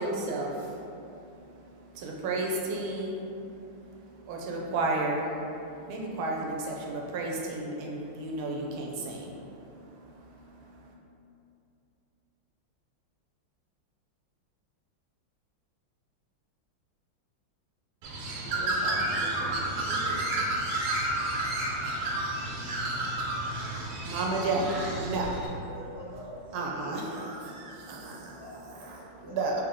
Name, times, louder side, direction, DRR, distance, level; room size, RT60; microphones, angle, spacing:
voice 1, 0.0-10.9 23.4-25.3 26.5-28.4 28.9-29.5, right 2 dB, 85° right, -1 dB, 1.5 m, -33 dB
Bird, 18.0-25.5, right 2 dB, 70° right, 1.2 m, -31 dB
voice 2, 18.4-20.5, equal, 85° left, -4 dB, 1.7 m, -42 dB
voice 3, 25.7-26.6 27.0-27.7 28.4-29.3, equal, 35° right, -11 dB, 1.7 m, -46 dB
3.9 x 3.4 x 3.6 m, 2.7 s
omnidirectional pair, 2.3 m